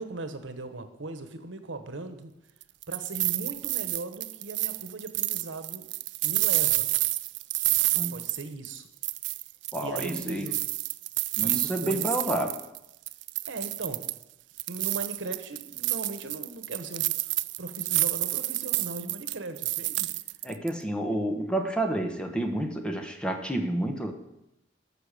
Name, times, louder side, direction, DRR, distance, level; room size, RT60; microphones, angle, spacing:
voice 1, 0.0-2.3 2.9-5.9 6.2-6.9 8.1-8.9 9.8-10.7 11.4-12.6 13.5-14.1 14.7-17.1 17.6-20.1, right 3 dB, 85° right, 9 dB, 1.2 m, -38 dB
sound 1, 2.6-8.8 9.0-12.8 13.1-14.2 14.6-20.7, right 19 dB, 70° right, 0.4 m, -29 dB
voice 2, 9.7-10.5 11.4-12.5 20.4-24.1, right 1 dB, 5° left, 4 dB, 1.0 m, -29 dB
12.5 x 6.5 x 6.7 m, 0.88 s
head